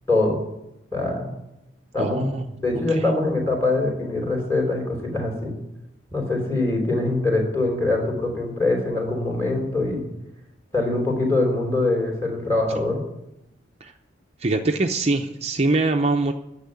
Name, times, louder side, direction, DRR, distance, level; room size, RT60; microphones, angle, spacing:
voice 1, 0.1-0.4 0.9-1.3 1.9-2.3 2.6-5.5 6.1-10.0 10.7-13.0, left 2 dB, 15° left, 1 dB, 3.2 m, -23 dB
voice 2, 2.0-2.5 2.9-3.0 13.8-13.9 14.4-16.3, right 2 dB, 35° right, 4 dB, 0.6 m, -23 dB
10.5 x 7.3 x 9.6 m, 0.88 s
head